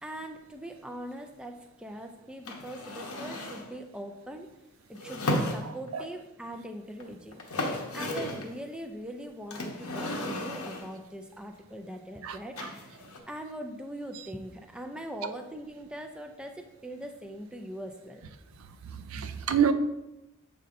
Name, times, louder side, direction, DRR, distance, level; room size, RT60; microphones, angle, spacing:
voice 1, 0.0-4.5 4.9-7.4 7.9-13.0 13.3-18.2 19.2-19.3, equal, 5° right, 4 dB, 0.4 m, -41 dB
sound 1, 2.5-3.7 5.0-6.1 7.0-7.1 7.3-8.5 9.5-11.0 12.6-13.2, left 1 dB, 90° left, 1.0 m, -34 dB
voice 2, 5.6-6.1 12.2-12.7 15.2-15.3 18.8-19.7, right 7 dB, 75° right, 9 dB, 0.5 m, -29 dB
7.5 x 5.4 x 2.6 m, 0.92 s
head